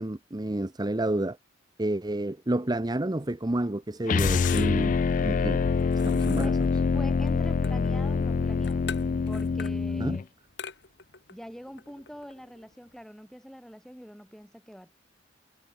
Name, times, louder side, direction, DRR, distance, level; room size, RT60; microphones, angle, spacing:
voice 1, 0.0-1.4 1.8-4.9 5.2-5.6 5.9-6.5 10.0-10.2, right 1 dB, 20° right, 0.8 m, -29 dB
sound 1, 3.2-13.0, left 6 dB, 65° left, 4.7 m, -45 dB
sound 2, 4.1-10.2, left 5 dB, 45° left, 0.3 m, -25 dB
voice 2, 6.9-8.9 9.3-10.3 11.3-14.9, equal, ahead, 5.0 m, -44 dB
head